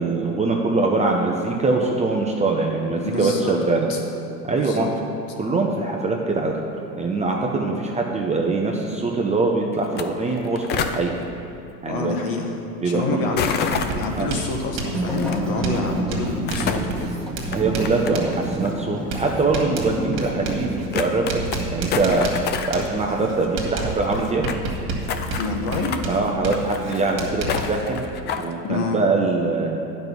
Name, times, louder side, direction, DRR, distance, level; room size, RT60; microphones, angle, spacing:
voice 1, 0.0-3.9 4.4-4.9 5.4-6.5 7.0-11.1 11.8-12.1 12.8-13.3 14.1-14.3 17.5-21.4 21.7-22.3 22.7-24.4 26.1-28.1 28.3-29.8, right 3 dB, 15° right, 0 dB, 0.7 m, -23 dB
voice 2, 3.0-3.6 3.9-4.0 4.5-4.9 11.8-12.5 12.8-13.6 13.9-17.2 25.4-26.0 26.9-27.0 28.6-29.0, left 3 dB, 45° left, 2 dB, 1.5 m, -27 dB
sound 1, 9.8-10.0 10.3-11.0 13.4-14.2 15.2-15.4 16.3-16.9 17.4-18.3 18.6-18.7 19.6-19.7 20.1-20.2 20.5-20.6 20.9-21.6 21.9-22.9 23.2-23.3 23.4-23.5 23.7-24.6 25.1-26.0 26.5-27.2 27.5-28.5, left 7 dB, 25° left, 0.4 m, -28 dB
Writing, 13.7-27.8, right 2 dB, 45° right, 1.9 m, -31 dB
sound 2, 14.9-21.2, right 1 dB, ahead, 1.4 m, -30 dB
9.2 x 5.4 x 6.1 m, 2.9 s
hypercardioid pair, 95°, 48 cm